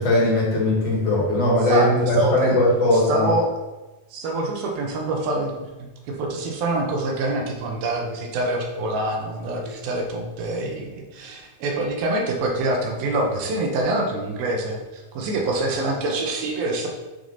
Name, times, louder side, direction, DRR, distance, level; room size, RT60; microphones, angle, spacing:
voice 1, 0.0-3.3, left 1 dB, 50° left, -4 dB, 2.7 m, -19 dB
voice 2, 1.7-2.6 2.9-3.5 4.1-16.9, right 2 dB, 80° right, 1 dB, 3.1 m, -25 dB
8.6 x 6.4 x 4.1 m, 1.1 s
omnidirectional pair, 4.2 m